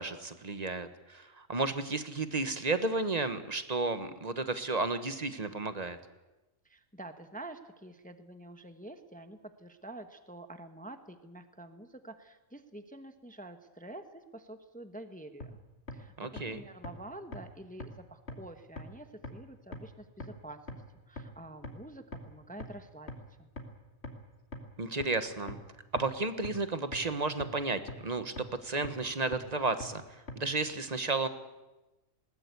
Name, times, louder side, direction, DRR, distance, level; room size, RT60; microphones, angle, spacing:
voice 1, 0.0-6.0 16.2-16.6 24.8-25.6 25.9-31.3, right 3 dB, 30° right, 10 dB, 1.3 m, -33 dB
voice 2, 6.6-15.5 15.9-23.5, right 1 dB, 5° left, 8 dB, 1.0 m, -48 dB
sound 1, 15.4-15.5 15.9-16.0 16.4-16.5 16.8-16.9 17.3-17.4 17.8-17.9 18.3-18.4 18.8-18.9 19.2-19.3 19.7-19.8 20.2-20.3 20.7-20.8 21.2-21.3 21.6-21.7 22.1-22.2 22.6-22.7 23.1-23.2 23.6-23.7 24.0-24.1 24.5-24.6 25.0-25.1 25.5-25.6 26.0-26.1 26.4-26.5 26.9-27.0 27.4-27.5 27.9-28.0 28.4-28.5 28.8-28.9 29.3-29.4 29.8-29.9 30.3-30.4, left 3 dB, 55° left, 2.8 m, -40 dB
20.5 x 19.0 x 8.3 m, 1.1 s
omnidirectional pair, 1.4 m